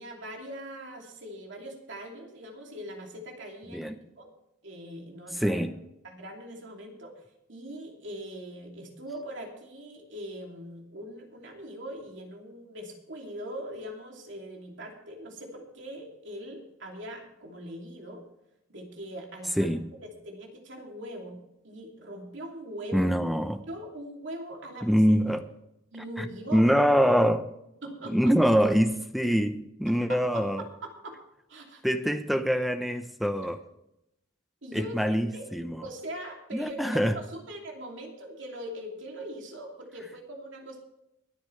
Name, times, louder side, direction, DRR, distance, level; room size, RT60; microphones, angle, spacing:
voice 1, 0.0-4.3 4.6-5.6 6.0-7.1 7.5-18.2 18.7-19.7 20.2-23.1 23.7-25.0 25.9-26.7 27.8-28.3 30.1-31.2 31.5-31.8 34.6-35.4 35.8-40.8, right 1 dB, 65° right, 2.8 m, -41 dB
voice 2, 3.7-4.0 5.3-5.8 19.6-19.9 22.9-23.6 24.8-25.4 26.2-27.5 28.1-30.6 31.8-33.6 34.7-35.9 36.5-37.2, equal, ahead, 0.7 m, -24 dB
23.5 x 9.5 x 3.3 m
head